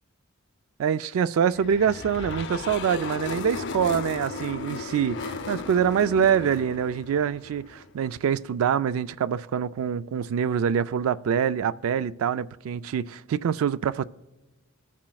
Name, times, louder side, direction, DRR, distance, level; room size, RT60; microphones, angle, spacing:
voice 1, 0.8-14.0, right 8 dB, 75° right, 0.3 m, -25 dB
sound 1, 1.5-8.0, left 4 dB, 55° left, 0.5 m, -36 dB
21.0 x 7.3 x 2.3 m
head